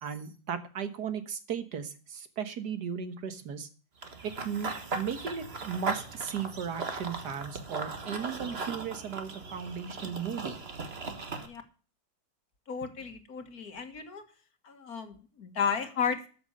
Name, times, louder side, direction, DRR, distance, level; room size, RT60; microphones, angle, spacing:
voice 1, 0.0-3.7 4.2-10.6, right 7 dB, 60° right, 10 dB, 1.9 m, -36 dB
Run / Bird vocalization bird call bird song, 4.0-11.5, right 3 dB, 35° right, 1.6 m, -38 dB
voice 2, 12.7-14.2 14.6-16.3, left 6 dB, 50° left, 8 dB, 2.1 m, -33 dB
13.0 x 7.0 x 6.5 m, 0.38 s
omnidirectional pair, 2.0 m